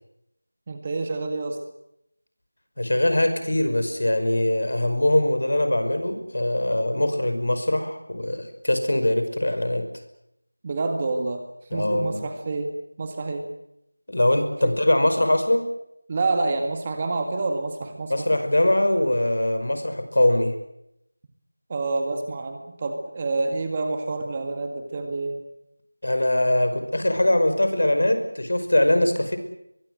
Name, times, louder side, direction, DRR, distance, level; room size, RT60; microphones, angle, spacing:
voice 1, 0.7-1.6 10.6-11.4 11.7-13.5 14.6-14.7 16.1-18.3 21.7-25.4, right 3 dB, 20° right, 5 dB, 1.9 m, -28 dB
voice 2, 2.8-9.9 11.7-12.2 14.1-15.7 18.1-20.5 26.0-29.4, left 1 dB, 65° left, 8 dB, 5.6 m, -22 dB
23.5 x 22.5 x 7.8 m, 0.80 s
figure-of-eight pair, 175°, 0 cm